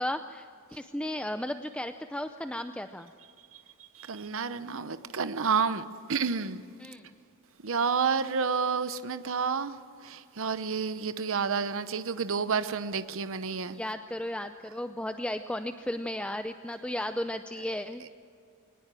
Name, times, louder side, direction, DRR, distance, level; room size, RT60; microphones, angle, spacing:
voice 1, 0.0-3.1 6.8-7.0 13.7-18.0, left 1 dB, 5° left, 8 dB, 0.5 m, -34 dB
voice 2, 4.1-5.8 6.1-6.6 7.6-9.7 10.1-13.7, right 5 dB, 65° right, 12 dB, 0.8 m, -29 dB
21.5 x 19.5 x 7.6 m, 2.4 s
head